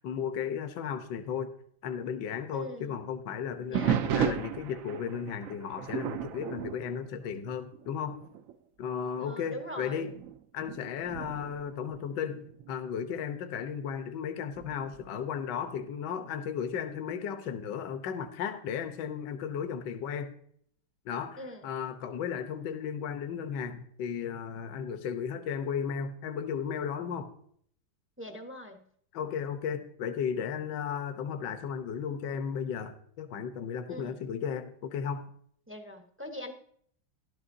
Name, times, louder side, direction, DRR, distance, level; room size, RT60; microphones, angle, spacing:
voice 1, 0.0-1.5 1.8-8.2 8.8-10.1 10.5-20.3 21.0-27.3 29.1-35.2, left 7 dB, 70° left, 7 dB, 1.4 m, -35 dB
voice 2, 2.5-3.0 3.7-4.0 9.2-10.1 21.4-21.7 28.2-28.8 33.9-34.2 35.7-36.5, equal, 15° right, 4 dB, 0.4 m, -42 dB
sound 1, 3.7-7.9 8.2-8.6 9.2-9.3 10.0-12.7 14.6-15.1, right 9 dB, 80° right, 0.7 m, -34 dB
14.0 x 11.5 x 2.6 m, 0.63 s
omnidirectional pair, 2.1 m